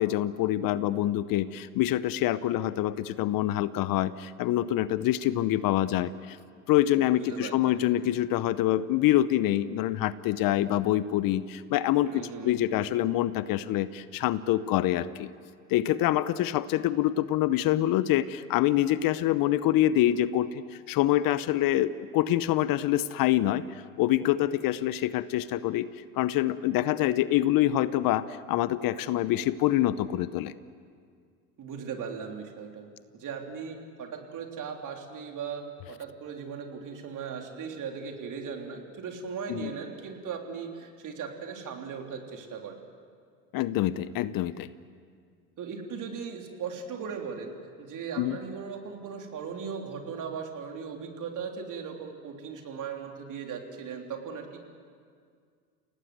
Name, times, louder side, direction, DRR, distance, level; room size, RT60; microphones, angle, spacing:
voice 1, 0.0-6.4 6.7-15.3 15.7-20.6 20.9-23.6 24.0-25.9 26.2-30.5 39.5-39.7 43.5-44.7 48.2-48.4, left 13 dB, 50° left, 16 dB, 0.9 m, -26 dB
voice 2, 7.0-7.8 12.1-12.6 31.6-32.9 33.1-42.8 45.6-54.7, right 6 dB, 45° right, 3 dB, 3.6 m, -38 dB
28.5 x 18.0 x 8.0 m, 2.1 s
hypercardioid pair, 75°, 43 cm